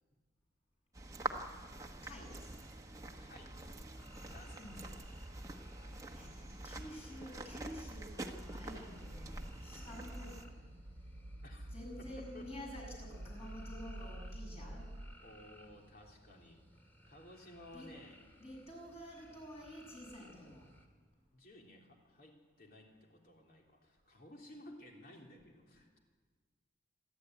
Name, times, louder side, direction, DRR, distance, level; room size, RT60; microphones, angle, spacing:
sound 1, 0.9-10.4, right 2 dB, 15° right, 1.2 m, -46 dB
voice 1, 1.8-2.6 4.6-4.9 6.1-10.5 11.7-14.9 17.7-17.9 18.4-20.7, equal, 30° left, -1 dB, 6.8 m, -50 dB
sound 2, 2.3-20.9, equal, 10° left, 2.2 m, -61 dB
voice 2, 3.2-3.8 4.3-4.7 11.4-12.5 15.2-16.6 17.1-18.2 21.3-26.0, left 1 dB, 50° left, 1 dB, 3.3 m, -56 dB
sound 3, 8.5-15.1, right 1 dB, 60° right, 1.0 m, -49 dB
27.0 x 12.0 x 9.3 m, 1.5 s
head